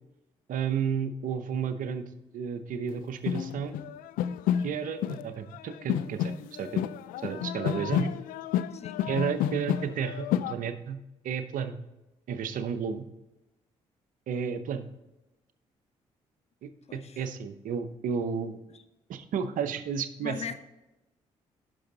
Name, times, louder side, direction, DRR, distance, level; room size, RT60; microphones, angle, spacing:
voice 1, 0.5-3.8 4.6-6.3 6.6-6.8 7.2-8.1 9.1-11.0 11.2-11.8 12.3-13.0 14.3-14.9 16.6-18.6 19.1-20.4, right 7 dB, 70° right, 11 dB, 0.7 m, -32 dB
sound 1, 2.9-3.0 3.3-5.3 5.5-10.5, left 10 dB, 75° left, 0.4 m, -30 dB
voice 2, 8.7-9.0 16.9-17.3 18.7-18.8 20.2-20.5, left 6 dB, 50° left, 10 dB, 0.9 m, -39 dB
10.0 x 6.2 x 3.9 m, 0.98 s
hypercardioid pair, 50°, 14 cm